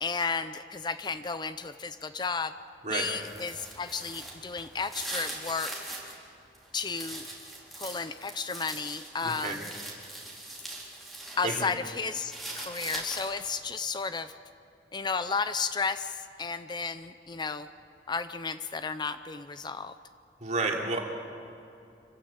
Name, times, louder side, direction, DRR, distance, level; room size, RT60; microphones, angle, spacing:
voice 1, 0.0-2.6 2.9-5.7 6.7-7.2 7.8-9.7 11.4-14.3 14.9-17.7 18.1-19.9, left 5 dB, 25° left, 12 dB, 0.5 m, -33 dB
sound 1, 3.0-6.1 6.5-11.4 11.7-13.5, right 1 dB, ahead, 4.0 m, -41 dB
voice 2, 9.2-9.6 11.4-11.6 20.4-21.0, right 3 dB, 45° right, 0 dB, 2.9 m, -30 dB
26.0 x 15.5 x 8.5 m, 2.5 s
head